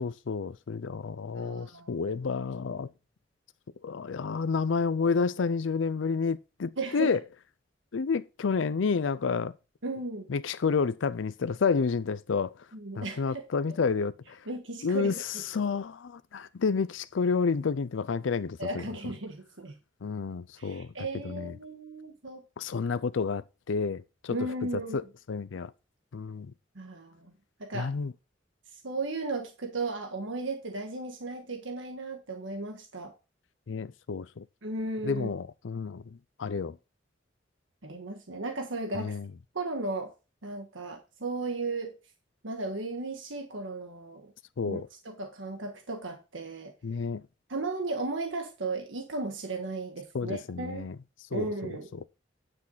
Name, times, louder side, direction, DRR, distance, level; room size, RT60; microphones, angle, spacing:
voice 1, 0.0-2.9 3.8-7.2 7.9-9.5 10.3-12.5 13.0-14.4 14.8-18.9 20.0-20.9 21.2-21.6 22.6-24.4 24.9-25.7 26.1-26.5 27.7-28.1 33.7-34.4 35.0-36.8 38.9-39.3 44.6-44.9 46.8-47.2 50.1-51.0 51.3-51.5 52.0-52.1, left 5 dB, 80° left, 0.5 m, -30 dB
voice 2, 1.3-1.9 6.8-7.1 9.8-10.3 12.7-13.4 14.5-15.2 18.6-19.8 20.6-22.4 24.3-25.0 26.7-27.3 27.6-27.9 28.8-33.1 34.6-35.3 37.8-39.2 39.5-40.1 40.4-41.9 42.4-44.3 44.6-44.8 45.0-46.7 47.5-50.9 51.3-51.9, right 2 dB, 85° right, 1.6 m, -35 dB
9.8 x 6.4 x 3.9 m
head